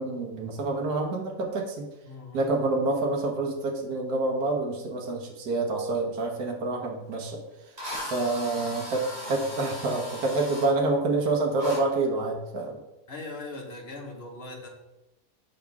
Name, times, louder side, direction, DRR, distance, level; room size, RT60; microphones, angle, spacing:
voice 1, 0.0-1.9 2.3-7.4 8.0-12.8, right 2 dB, 70° right, 0 dB, 1.5 m, -27 dB
voice 2, 2.0-2.7 8.8-9.4 13.1-14.7, left 2 dB, 40° left, 0 dB, 1.4 m, -41 dB
Drill, 7.1-7.2 7.8-10.7 11.6-11.8, left 1 dB, 25° right, 2.9 m, -37 dB
7.2 x 5.3 x 3.5 m, 0.98 s
omnidirectional pair, 1.8 m